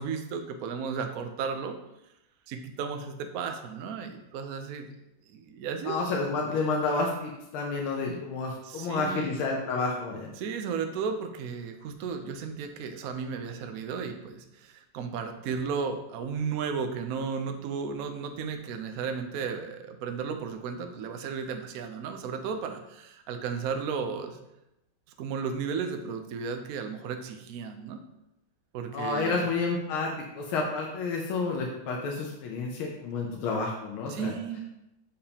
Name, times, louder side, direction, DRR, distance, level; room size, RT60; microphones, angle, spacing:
voice 1, 0.0-1.8 2.5-4.9 5.3-6.0 8.1-8.2 8.6-9.4 10.4-24.4 25.2-28.0 28.7-29.5 34.1-34.6, right 6 dB, 80° right, 5 dB, 0.8 m, -34 dB
voice 2, 5.8-10.3 28.9-34.3, left 3 dB, 90° left, -1 dB, 1.7 m, -30 dB
6.8 x 5.6 x 2.8 m, 0.88 s
omnidirectional pair, 2.3 m